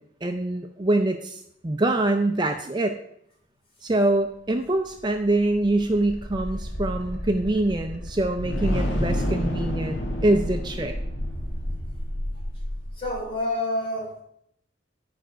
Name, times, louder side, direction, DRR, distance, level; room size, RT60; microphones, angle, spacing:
voice 1, 0.2-3.0 3.8-11.0, right 2 dB, 25° right, 6 dB, 0.5 m, -24 dB
sound 1, 4.9-13.3, equal, 75° left, 1.6 m, -30 dB
voice 2, 12.9-14.2, left 1 dB, 30° left, -2 dB, 2.9 m, -28 dB
10.5 x 5.1 x 5.6 m, 0.74 s
head